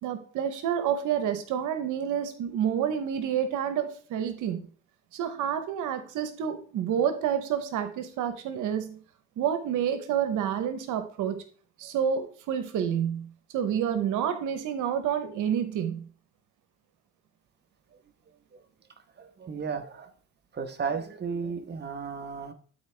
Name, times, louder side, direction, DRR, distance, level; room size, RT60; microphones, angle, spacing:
voice 1, 0.0-4.7 5.1-9.0 9.4-11.4 11.8-16.1, right 8 dB, 90° right, 9 dB, 0.9 m, -29 dB
voice 2, 19.2-20.1 20.5-22.5, right 5 dB, 35° right, 8 dB, 1.1 m, -34 dB
12.0 x 4.3 x 3.3 m, 0.43 s
cardioid pair, 90°, 30 cm